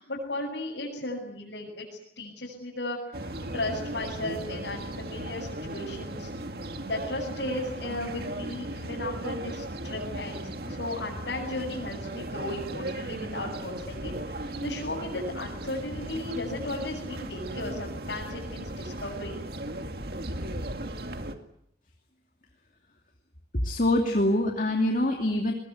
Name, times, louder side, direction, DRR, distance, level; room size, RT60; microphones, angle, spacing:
voice 1, 0.0-1.9 2.2-6.3 6.8-19.4, left 2 dB, 90° left, -5 dB, 7.1 m, -35 dB
sound 1, 3.1-21.3, right 1 dB, 60° right, 2.2 m, -36 dB
voice 2, 23.5-25.5, left 1 dB, 50° left, 1 dB, 2.7 m, -24 dB
22.5 x 21.5 x 9.6 m, 0.75 s
head